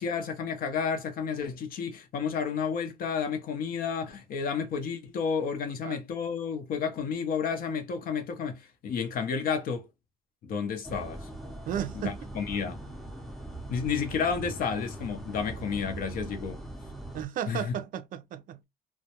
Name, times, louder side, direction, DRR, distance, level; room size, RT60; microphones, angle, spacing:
voice 1, 0.0-9.9 10.4-11.3 12.0-12.8 13.7-16.6 17.5-17.7, left 6 dB, 60° left, 0.6 m, -31 dB
sound 1, 10.8-17.3, right 2 dB, ahead, 0.6 m, -41 dB
voice 2, 11.7-12.3 17.1-18.6, right 10 dB, 55° right, 0.4 m, -34 dB
2.2 x 2.1 x 2.8 m
cardioid pair, 110°, 17 cm